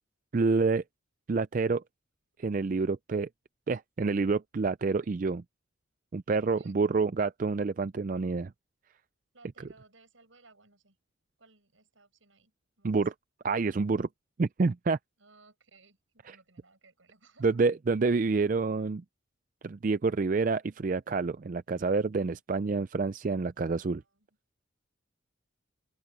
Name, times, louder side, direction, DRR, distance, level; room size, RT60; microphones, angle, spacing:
voice 1, 0.3-0.8 1.3-1.8 2.4-3.3 3.7-5.4 6.1-8.5 12.8-13.1 13.4-14.1 14.4-15.0 16.3-16.4 17.4-19.0 19.6-24.0, right 4 dB, 40° right, 0.4 m, -28 dB
voice 2, 9.3-11.0 11.4-13.0 15.2-17.6 23.9-24.3, right 3 dB, 75° right, 7.3 m, -61 dB
open air
head